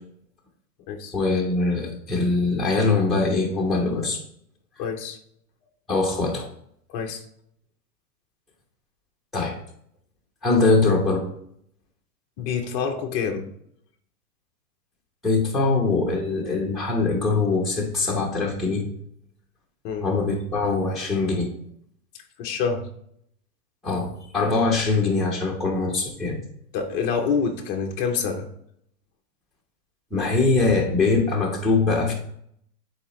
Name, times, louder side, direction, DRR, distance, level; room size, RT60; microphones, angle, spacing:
voice 1, 1.1-4.2 5.9-6.5 9.3-9.5 10.4-11.3 15.2-18.9 20.0-21.5 23.8-26.4 30.1-32.1, left 3 dB, ahead, -2 dB, 0.9 m, -22 dB
voice 2, 4.8-5.2 6.9-7.2 12.4-13.5 19.8-20.1 22.4-22.9 26.7-28.5, left 6 dB, 20° left, 4 dB, 0.5 m, -27 dB
9.8 x 4.3 x 3.0 m, 0.70 s
hypercardioid pair, 140°, 48 cm